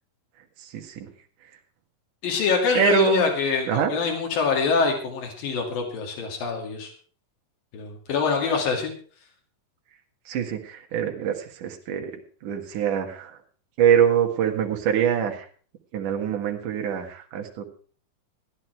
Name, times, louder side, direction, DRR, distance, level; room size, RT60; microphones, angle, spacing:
voice 1, 0.7-1.1 2.7-3.3 3.7-3.9 10.3-13.4 13.8-15.5 15.9-17.7, right 7 dB, 70° right, 2 dB, 3.1 m, -24 dB
voice 2, 2.2-6.9 7.7-8.9, left 5 dB, 85° left, 1 dB, 4.2 m, -25 dB
16.0 x 11.0 x 4.6 m, 0.43 s
omnidirectional pair, 3.9 m